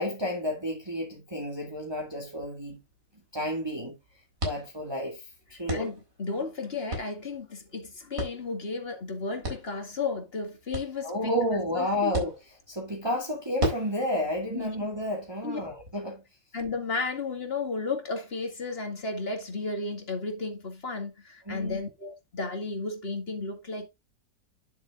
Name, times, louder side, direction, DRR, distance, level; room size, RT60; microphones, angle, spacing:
voice 1, 0.0-2.8 3.3-4.0 4.4-5.9 11.0-12.4 12.7-16.2 21.5-21.8, left 1 dB, 15° right, 2.4 m, -31 dB
sound 1, 1.7-15.9, right 1 dB, 45° right, 4.5 m, -39 dB
voice 2, 5.7-12.3 14.5-14.7 15.4-15.6 16.5-23.9, left 3 dB, 35° left, 2.3 m, -33 dB
10.5 x 7.1 x 2.5 m
omnidirectional pair, 1.9 m